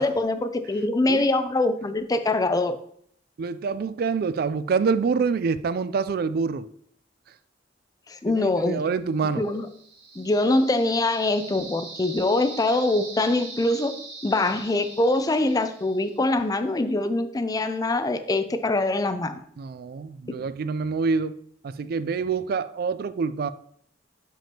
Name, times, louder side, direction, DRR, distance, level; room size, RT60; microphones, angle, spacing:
voice 1, 0.0-2.8 8.1-8.8 9.4-9.7 10.2-13.9 14.2-19.4 20.3-20.4, left 2 dB, 20° left, 0.4 m, -24 dB
voice 2, 3.4-6.7 8.3-9.4 19.6-21.4 21.6-23.5, right 5 dB, 55° right, 0.3 m, -26 dB
sound 1, 9.4-16.3, right 3 dB, 75° right, 1.7 m, -42 dB
7.0 x 5.9 x 2.9 m
head